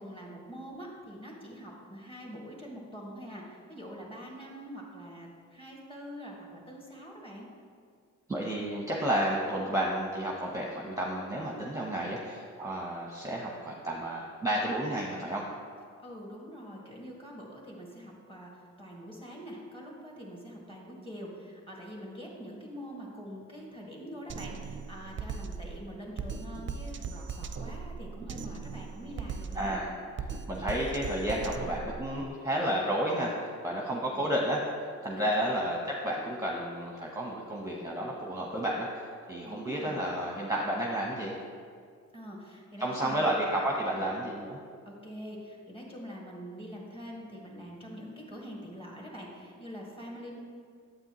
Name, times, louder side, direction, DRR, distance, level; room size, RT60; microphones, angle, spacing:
voice 1, 0.0-7.5 16.0-29.8 33.9-34.3 35.2-35.6 39.4-40.0 42.1-43.4 43.9-44.1 44.9-50.4, equal, 20° left, -2 dB, 2.0 m, -44 dB
voice 2, 8.3-15.4 29.5-29.9 30.5-41.3 42.8-44.6, right 1 dB, 10° right, -2 dB, 0.9 m, -31 dB
Drum kit, 24.3-32.3, right 5 dB, 40° right, 0.5 m, -39 dB
8.7 x 7.7 x 3.0 m, 2.1 s
cardioid pair, 90°, 30 cm